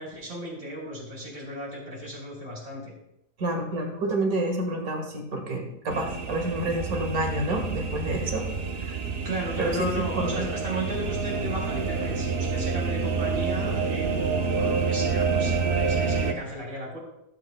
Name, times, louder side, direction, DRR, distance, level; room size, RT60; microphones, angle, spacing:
voice 1, 0.0-2.9 9.2-17.0, right 1 dB, 70° right, -2 dB, 4.4 m, -35 dB
voice 2, 3.4-8.5 8.8-9.0 9.6-10.5, right 1 dB, 85° right, 2 dB, 2.1 m, -29 dB
sound 1, 5.9-16.3, right 4 dB, 50° right, 0.8 m, -28 dB
20.0 x 8.0 x 2.2 m, 0.85 s
omnidirectional pair, 1.5 m